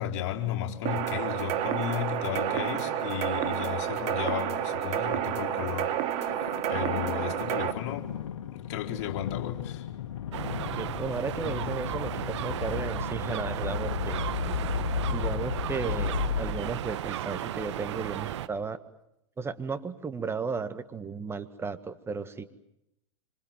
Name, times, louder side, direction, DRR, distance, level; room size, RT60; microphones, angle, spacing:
voice 1, 0.0-6.3 6.7-8.1 8.5-9.8, left 11 dB, 50° left, 4.2 m, -34 dB
sound 1, 0.9-7.7, right 11 dB, 40° right, 2.2 m, -30 dB
sound 2, 2.1-17.1, left 8 dB, 75° left, 2.0 m, -35 dB
sound 3, 10.3-18.5, right 12 dB, 65° right, 1.3 m, -35 dB
voice 2, 10.8-14.2 14.4-14.6 15.1-18.8 19.4-22.5, right 5 dB, 15° right, 1.6 m, -35 dB
26.5 x 26.0 x 7.6 m
hypercardioid pair, 110°, 16 cm